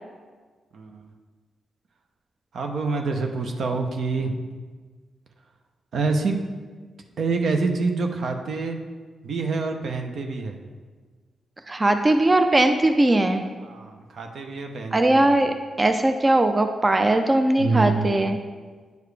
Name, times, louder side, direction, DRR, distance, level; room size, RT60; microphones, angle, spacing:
voice 1, 0.7-1.1 2.5-4.4 5.9-6.4 7.2-8.8 9.2-10.6 13.6-15.3 17.6-18.1, right 3 dB, 70° right, 4 dB, 0.7 m, -26 dB
voice 2, 11.7-13.4 14.9-18.4, right 1 dB, 30° right, 7 dB, 0.5 m, -20 dB
9.3 x 4.8 x 3.3 m, 1.5 s
supercardioid pair, 55°, 0 cm